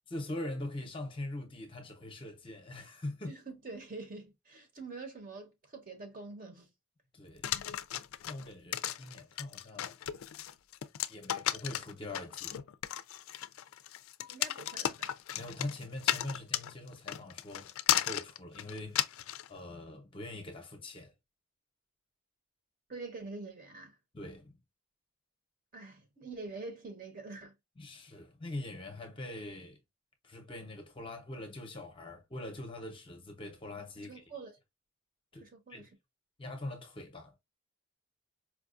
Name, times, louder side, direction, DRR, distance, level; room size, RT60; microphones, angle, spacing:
voice 1, 0.1-3.3 7.1-7.5 8.3-10.0 11.1-12.7 15.3-21.1 24.1-24.6 27.8-29.8 30.2-34.2 35.3-35.9 36.4-37.3, left 1 dB, 25° left, 0.6 m, -43 dB
voice 2, 3.3-6.7 14.3-15.1 22.9-23.9 25.7-27.5 34.0-34.6 35.4-35.9, right 3 dB, 40° right, 0.9 m, -45 dB
sound 1, 7.4-19.5, left 12 dB, 70° left, 0.3 m, -34 dB
4.6 x 2.3 x 2.4 m
head